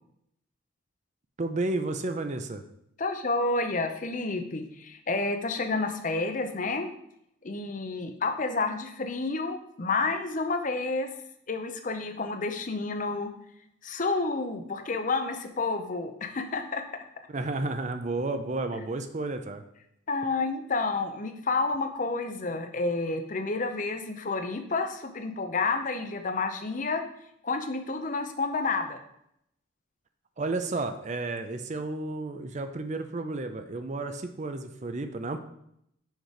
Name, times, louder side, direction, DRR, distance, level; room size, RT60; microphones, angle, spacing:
voice 1, 1.4-2.6 17.3-19.6 30.4-35.4, right 2 dB, 35° right, 8 dB, 0.5 m, -32 dB
voice 2, 3.0-6.9 7.4-11.1 11.5-13.3 13.8-16.8 18.7-18.9 20.1-27.0 27.4-29.0, left 3 dB, 40° left, 7 dB, 0.6 m, -30 dB
6.4 x 4.9 x 5.0 m, 0.75 s
head